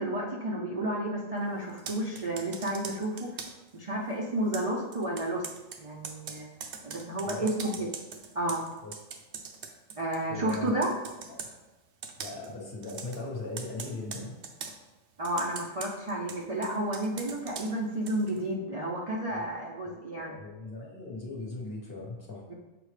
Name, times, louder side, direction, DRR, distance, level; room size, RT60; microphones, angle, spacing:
voice 1, 0.0-3.3 3.7-5.4 5.8-6.5 6.8-7.9 8.3-8.6 10.0-10.9 15.2-20.4 22.5-22.6, right 1 dB, 45° right, -3 dB, 0.4 m, -31 dB
Computer keyboard, 1.7-3.7 4.5-10.2 10.5-11.5 12.0-12.5 12.8-13.2 13.6-14.8 15.2-18.4, right 6 dB, 60° right, 0.8 m, -42 dB
voice 2, 10.3-10.8 11.3-11.4 12.2-14.4 19.3-19.4 19.9-22.4, left 2 dB, 45° left, -3 dB, 1.3 m, -39 dB
6.9 x 4.1 x 3.3 m, 1.1 s
omnidirectional pair, 1.4 m